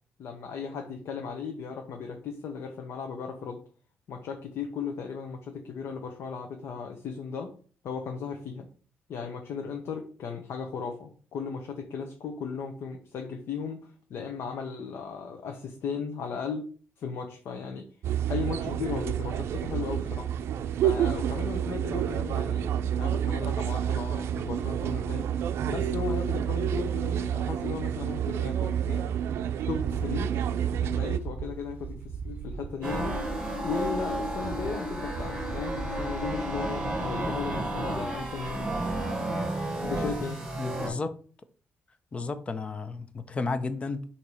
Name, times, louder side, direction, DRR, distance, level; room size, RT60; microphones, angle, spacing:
voice 1, 0.2-3.6 4.1-7.5 7.8-8.7 9.1-16.7 17.0-17.9 18.3-20.3 20.8-25.3 25.7-29.1 29.7-30.3 30.7-33.2 33.6-38.7 39.8-40.4, left 5 dB, 70° left, 0.8 m, -36 dB
sound 1, 18.0-31.2, right 9 dB, 75° right, 0.4 m, -29 dB
sound 2, 29.7-33.9 34.1-36.3, right 5 dB, 45° right, 0.8 m, -40 dB
sound 3, 32.8-40.9, right 1 dB, 20° right, 2.0 m, -32 dB
voice 2, 40.6-41.1 42.1-44.0, left 3 dB, 25° left, 0.5 m, -32 dB
6.7 x 2.9 x 4.8 m
cardioid pair, 145°, 4 cm